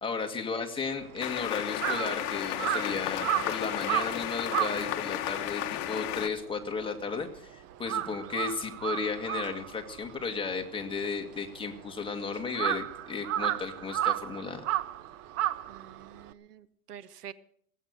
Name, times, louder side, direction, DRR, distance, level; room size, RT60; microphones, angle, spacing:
voice 1, 0.0-14.6, left 5 dB, 10° left, 3 dB, 1.8 m, -34 dB
Crow, 0.9-7.4 7.7-16.3, right 13 dB, 30° right, 0.8 m, -33 dB
sound 1, 1.2-6.3, left 13 dB, 40° left, 1.2 m, -33 dB
voice 2, 15.7-17.3, right 9 dB, 85° right, 16 dB, 1.1 m, -47 dB
18.0 x 8.3 x 7.9 m, 0.63 s
hypercardioid pair, 125°, 45 cm